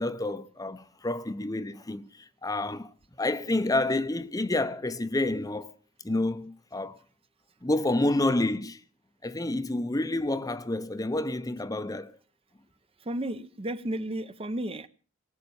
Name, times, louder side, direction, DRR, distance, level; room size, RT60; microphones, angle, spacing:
voice 1, 0.0-5.8 6.0-7.0 7.6-8.8 9.2-12.2, left 2 dB, 15° left, 0.7 m, -29 dB
voice 2, 13.0-14.9, right 1 dB, 25° right, 0.7 m, -33 dB
18.5 x 8.9 x 7.0 m
head